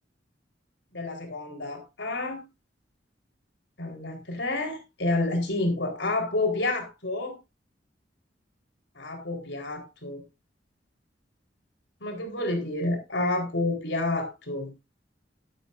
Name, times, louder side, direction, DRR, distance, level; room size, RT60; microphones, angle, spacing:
voice 1, 0.9-2.4 3.8-7.4 9.0-10.2 12.0-14.7, left 2 dB, 80° left, 4.2 m, -29 dB
12.5 x 12.0 x 2.6 m
head